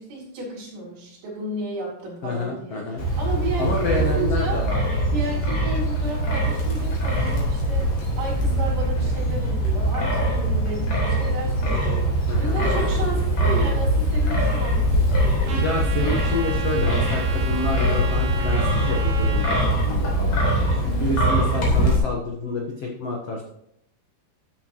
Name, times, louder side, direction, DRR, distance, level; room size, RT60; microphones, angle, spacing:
voice 1, 0.0-4.6 5.1-15.6 20.8-21.2, right 2 dB, 90° right, -5 dB, 6.3 m, -33 dB
voice 2, 2.2-3.0 3.6-4.8 5.3-5.4 12.3-13.1 15.4-19.6 19.8-20.4 21.0-23.4, left 2 dB, 90° left, 0 dB, 1.3 m, -28 dB
Wind, 3.0-22.0, right 1 dB, 50° left, 4.2 m, -22 dB
Trumpet, 15.5-19.7, right 4 dB, 65° right, 3.1 m, -34 dB
13.5 x 9.0 x 3.1 m, 0.73 s
omnidirectional pair, 5.0 m